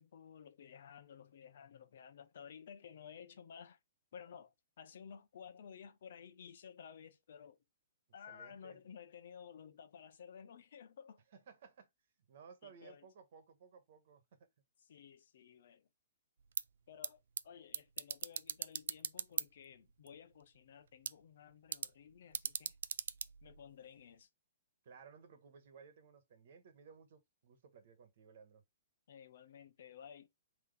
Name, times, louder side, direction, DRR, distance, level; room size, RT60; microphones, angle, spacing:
voice 1, 0.0-3.8 4.1-7.6 8.1-11.2 12.6-13.1 14.9-15.9 16.9-22.8 23.4-24.3 29.1-30.3, left 7 dB, 65° left, 0.7 m, -55 dB
voice 2, 8.3-8.8 11.5-11.9 12.3-14.5 24.8-28.6, right 6 dB, 55° right, 1.2 m, -59 dB
sound 1, 16.4-24.2, right 7 dB, 80° right, 0.3 m, -44 dB
3.7 x 3.0 x 3.4 m
hypercardioid pair, 155°, 0 cm